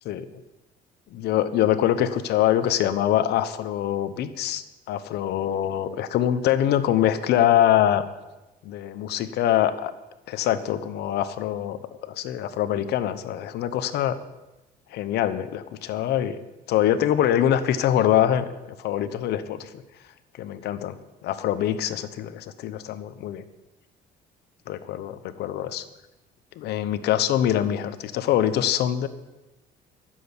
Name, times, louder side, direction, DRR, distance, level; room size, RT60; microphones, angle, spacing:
voice 1, 1.1-8.0 8.6-9.9 10.3-11.8 12.1-14.1 14.9-16.4 16.7-19.7 20.4-23.4 24.7-25.8 26.6-29.1, left 11 dB, 75° left, 13 dB, 1.0 m, -24 dB
11.0 x 7.7 x 9.8 m, 1.0 s
cardioid pair, 110°, 17 cm